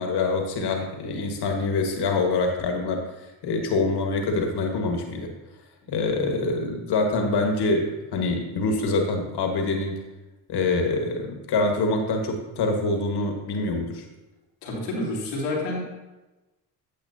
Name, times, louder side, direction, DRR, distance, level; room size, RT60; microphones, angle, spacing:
voice 1, 0.0-3.1 3.4-5.3 5.9-10.0 10.5-14.0, left 3 dB, 55° left, 3 dB, 1.7 m, -25 dB
voice 2, 14.6-15.9, left 2 dB, 85° left, -3 dB, 2.2 m, -28 dB
9.2 x 8.4 x 2.8 m, 1.1 s
hypercardioid pair, 55°, 46 cm